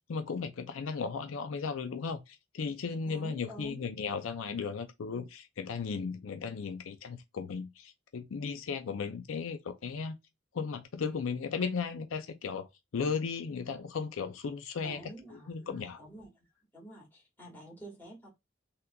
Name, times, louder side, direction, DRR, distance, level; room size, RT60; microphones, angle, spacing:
voice 1, 0.1-10.2 10.5-15.0 15.3-16.0, left 5 dB, 75° left, 0.4 m, -36 dB
voice 2, 3.0-3.9 14.8-16.3 16.7-18.3, right 1 dB, 10° left, 1.8 m, -48 dB
3.6 x 2.8 x 2.3 m
head